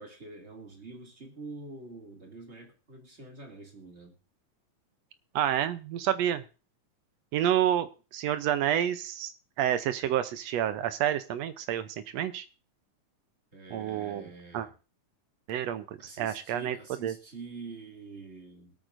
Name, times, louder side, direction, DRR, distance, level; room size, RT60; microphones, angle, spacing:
voice 1, 0.0-4.2 13.5-14.7 16.0-18.7, right 3 dB, 25° right, 1 dB, 2.5 m, -46 dB
voice 2, 5.3-6.4 7.3-9.3 9.6-11.9 12.1-12.4 13.7-14.7 15.5-16.8 17.0-17.2, right 10 dB, 70° right, 12 dB, 1.7 m, -29 dB
24.0 x 8.8 x 2.6 m, 0.33 s
omnidirectional pair, 3.5 m